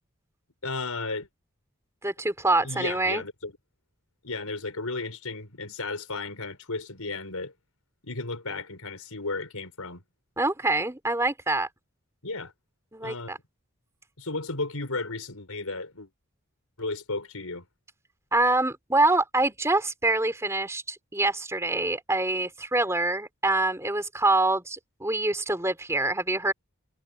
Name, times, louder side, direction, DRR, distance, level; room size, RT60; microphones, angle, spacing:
voice 1, 0.6-1.3 2.6-3.5 4.2-7.5 8.0-10.0 12.2-12.5 13.0-13.3 14.2-16.1 16.8-17.6, left 3 dB, 85° left, 4.9 m, -34 dB
voice 2, 2.0-3.2 10.4-11.7 12.9-13.4 18.3-26.5, right 2 dB, 15° right, 3.5 m, -25 dB
head